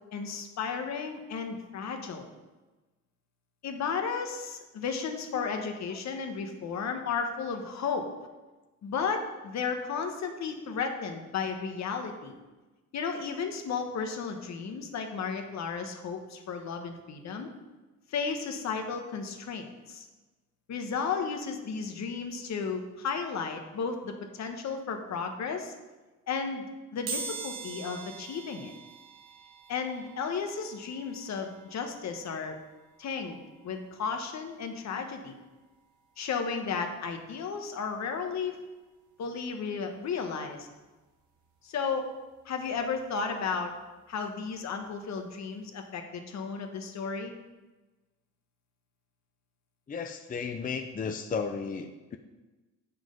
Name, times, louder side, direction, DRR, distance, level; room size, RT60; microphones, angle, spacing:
voice 1, 0.1-2.3 3.6-8.1 8.8-12.3 12.9-17.5 18.1-20.1 20.7-25.7 26.3-26.7 26.9-28.7 29.7-32.6 33.0-33.4 33.6-35.3 36.2-38.6 39.2-40.7 41.6-42.1 42.4-43.7 44.1-47.3, left 5 dB, 65° left, 5 dB, 1.2 m, -34 dB
sound 1, 27.1-37.7 38.2-38.3 39.4-39.6 39.8-41.9 42.3-44.9 45.3-45.4 45.8-45.9, right 5 dB, 85° right, 1.5 m, -45 dB
voice 2, 49.9-52.2, left 5 dB, 30° left, 6 dB, 0.5 m, -34 dB
7.4 x 6.1 x 5.2 m, 1.2 s
cardioid pair, 90°, 30 cm